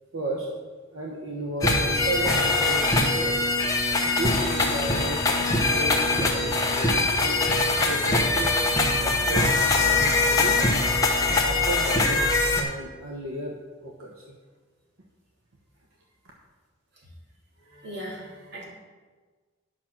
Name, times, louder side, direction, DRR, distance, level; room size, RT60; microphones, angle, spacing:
voice 1, 0.1-0.5 0.9-3.5 4.0-7.4 7.9-8.6 9.0-10.6 11.4-13.5 13.8-14.4, right 1 dB, 85° right, -1 dB, 1.2 m, -34 dB
sound 1, 1.6-12.6, left 2 dB, 15° left, 1.0 m, -22 dB
voice 2, 17.6-18.7, equal, 55° right, -3 dB, 2.9 m, -39 dB
10.5 x 6.1 x 6.0 m, 1.4 s
head